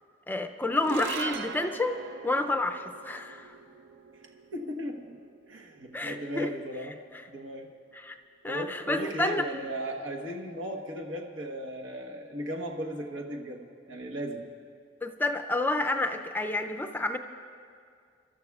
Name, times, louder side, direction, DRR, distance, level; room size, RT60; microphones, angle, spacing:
voice 1, 0.3-3.5 5.9-6.5 7.9-8.2 8.4-9.5 15.0-17.2, left 2 dB, 10° left, 7 dB, 0.4 m, -29 dB
sound 1, 0.7-7.2, right 6 dB, 60° right, 0.6 m, -42 dB
voice 2, 4.5-5.2 5.5-7.0 7.3-7.7 8.5-14.5, equal, 90° right, 1 dB, 1.2 m, -36 dB
29.5 x 13.0 x 2.4 m, 2.3 s
head